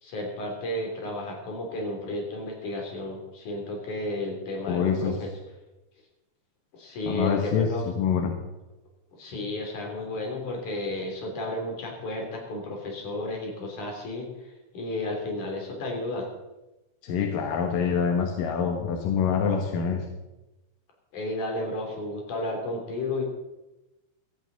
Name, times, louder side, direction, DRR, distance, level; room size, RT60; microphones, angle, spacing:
voice 1, 0.0-5.3 6.7-7.8 9.2-14.3 14.7-16.3 21.1-23.2, left 1 dB, 45° left, 1 dB, 4.1 m, -32 dB
voice 2, 4.7-5.2 7.1-8.3 17.0-20.0, left 6 dB, 65° left, 3 dB, 2.3 m, -26 dB
16.5 x 13.5 x 4.0 m, 1.0 s
omnidirectional pair, 5.3 m